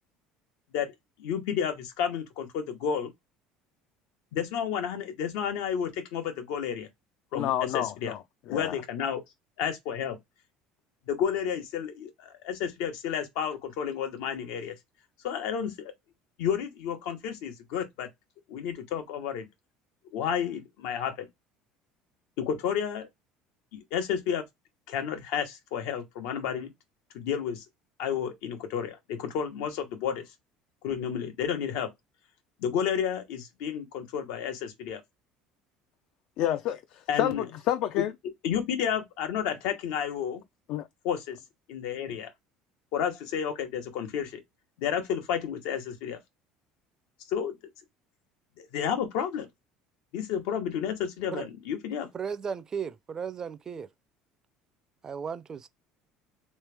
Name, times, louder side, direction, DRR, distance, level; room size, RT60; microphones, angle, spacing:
voice 1, 1.2-3.1 4.3-6.9 7.3-8.1 8.5-9.2 9.6-10.2 11.1-14.8 15.2-15.9 16.4-18.1 18.5-19.5 20.1-21.3 22.4-23.1 23.7-24.4 24.9-26.7 27.1-27.6 28.0-30.3 30.8-31.9 32.6-35.0 37.1-37.4 38.4-40.4 41.0-41.4 41.7-42.3 42.9-44.4 44.8-46.2 47.3-47.6 48.6-49.5 50.1-52.1, left 8 dB, 80° left, 1.1 m, -31 dB
voice 2, 7.3-8.2 8.5-8.7 36.4-38.1 40.7-40.9, left 12 dB, 60° left, 0.4 m, -29 dB
voice 3, 52.1-53.9 55.0-55.7, right 6 dB, 25° right, 0.4 m, -35 dB
3.4 x 3.2 x 3.3 m
cardioid pair, 145°, 2 cm